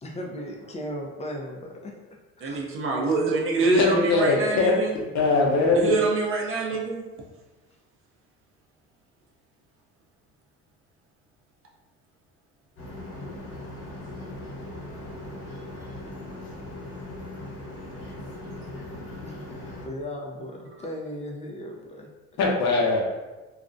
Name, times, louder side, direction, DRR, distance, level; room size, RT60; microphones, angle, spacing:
voice 1, 0.0-1.9 2.4-2.6 19.2-22.1, left 1 dB, 25° left, 0 dB, 0.4 m, -36 dB
voice 2, 2.4-4.9 5.7-7.0 19.4-19.5, right 2 dB, 45° right, 0 dB, 0.6 m, -25 dB
voice 3, 3.7-4.7 5.1-5.9 22.4-23.0, left 3 dB, 65° left, -2 dB, 0.7 m, -21 dB
sound 1, 12.8-19.8, left 1 dB, 45° left, 1.0 m, -39 dB
2.4 x 2.0 x 2.5 m, 1.2 s
supercardioid pair, 90°, 30 cm